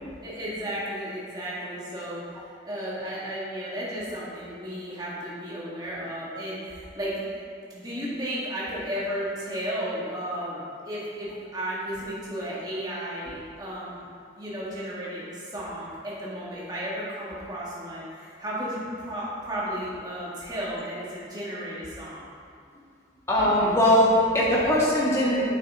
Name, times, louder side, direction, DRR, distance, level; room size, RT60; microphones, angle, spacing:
voice 1, 0.2-2.2 2.6-7.4 7.7-14.0 14.4-22.3, equal, 20° right, -7 dB, 1.9 m, -34 dB
voice 2, 23.3-25.4, left 1 dB, 15° left, -8 dB, 1.7 m, -21 dB
9.4 x 7.6 x 3.7 m, 2.4 s
head